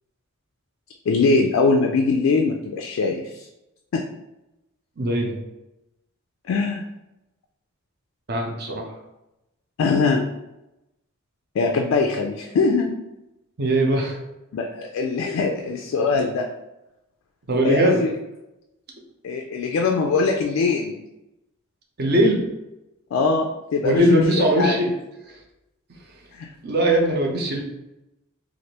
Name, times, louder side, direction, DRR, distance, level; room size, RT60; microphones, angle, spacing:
voice 1, 1.1-3.5 3.9-4.0 6.5-6.8 9.8-10.3 11.6-13.0 14.5-16.5 17.6-18.1 19.2-20.9 23.1-24.8 26.3-26.5, left 4 dB, 65° left, 2 dB, 0.3 m, -22 dB
voice 2, 5.0-5.3 8.3-8.9 13.6-14.2 17.5-18.0 22.0-22.4 23.8-24.9 26.6-27.6, right 1 dB, 50° right, 0 dB, 0.6 m, -20 dB
3.2 x 2.5 x 2.8 m, 0.93 s
head